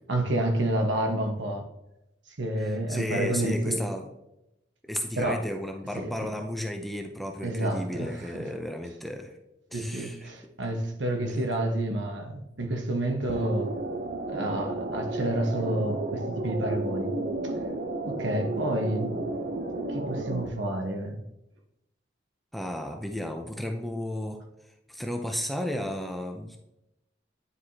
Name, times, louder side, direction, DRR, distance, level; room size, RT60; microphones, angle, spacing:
voice 1, 0.1-1.7 2.4-3.9 5.2-5.4 5.9-6.3 7.4-8.5 9.7-13.7 14.3-17.1 17.4-17.5 18.0-19.2 19.9-21.2, right 1 dB, 70° right, 1.2 m, -29 dB
voice 2, 2.6-4.1 4.9-9.3 9.7-10.3 22.5-24.4 24.9-26.6, left 1 dB, ahead, 0.6 m, -33 dB
sound 1, 13.3-20.5, right 2 dB, 50° right, 0.7 m, -32 dB
9.8 x 4.8 x 2.8 m
head